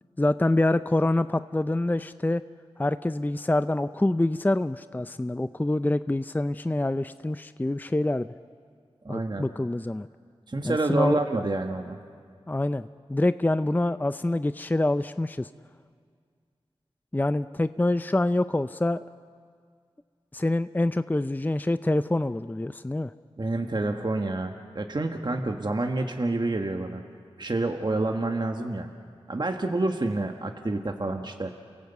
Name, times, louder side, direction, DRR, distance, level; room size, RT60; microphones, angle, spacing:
voice 1, 0.2-2.4 2.8-8.3 9.1-10.1 10.6-11.2 12.5-15.5 17.1-19.0 20.3-23.1, left 1 dB, 15° left, 12 dB, 0.5 m, -26 dB
voice 2, 9.0-9.5 10.5-12.0 23.4-27.0 27.4-28.9 29.3-31.5, right 2 dB, 45° right, 3 dB, 1.5 m, -28 dB
28.5 x 16.5 x 8.2 m, 2.1 s
cardioid pair, 40°, 10 cm